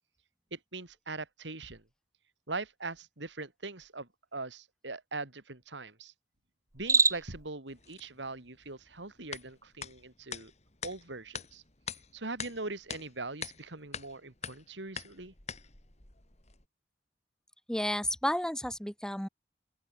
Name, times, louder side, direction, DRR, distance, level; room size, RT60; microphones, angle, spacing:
voice 1, 0.5-1.8 2.5-6.1 6.7-10.5 10.8-11.6 12.1-15.3, right 3 dB, 85° right, 3.2 m, -41 dB
Cricket, 6.7-7.5, right 4 dB, 15° right, 1.2 m, -26 dB
sound 1, 7.7-16.7, left 7 dB, 40° left, 3.8 m, -45 dB
voice 2, 17.7-19.3, left 1 dB, 5° left, 2.0 m, -32 dB
open air
head